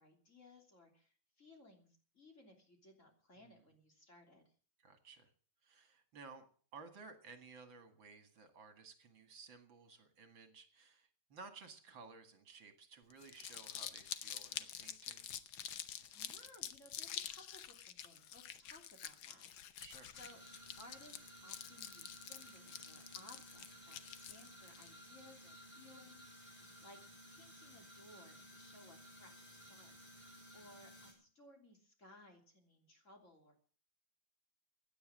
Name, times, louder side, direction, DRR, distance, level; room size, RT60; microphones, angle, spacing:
voice 1, 0.0-4.4 16.0-19.8 20.1-20.4 20.8-27.0 27.3-33.5, left 1 dB, 35° left, 3 dB, 3.5 m, -62 dB
voice 2, 4.8-5.3 5.6-6.4 6.7-15.3 19.8-20.2, right 4 dB, 70° right, 7 dB, 2.7 m, -56 dB
Crumpling crinkling, 13.1-24.9, left 10 dB, 70° left, 1.7 m, -47 dB
sound 1, 20.1-31.1, equal, 5° left, 6.1 m, -57 dB
16.5 x 10.0 x 7.7 m, 0.43 s
omnidirectional pair, 2.3 m